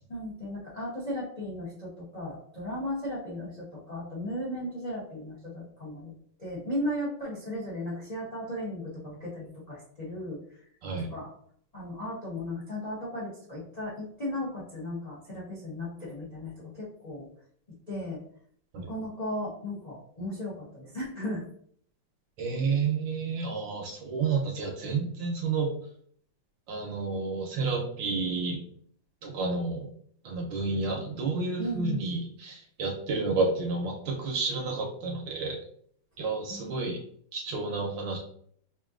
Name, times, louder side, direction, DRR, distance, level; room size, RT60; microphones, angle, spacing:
voice 1, 0.1-6.1 6.4-10.6 11.0-11.3 11.7-17.3 17.9-18.2 18.7-21.4 31.6-32.1 36.5-36.8, left 1 dB, 40° left, -6 dB, 0.5 m, -36 dB
voice 2, 10.8-11.1 18.7-18.9 22.4-25.7 26.7-28.6 29.2-29.9 30.2-35.6 36.2-37.0 37.3-38.2, right 4 dB, 70° right, 0 dB, 1.3 m, -30 dB
5.1 x 2.6 x 2.4 m, 0.63 s
omnidirectional pair, 2.3 m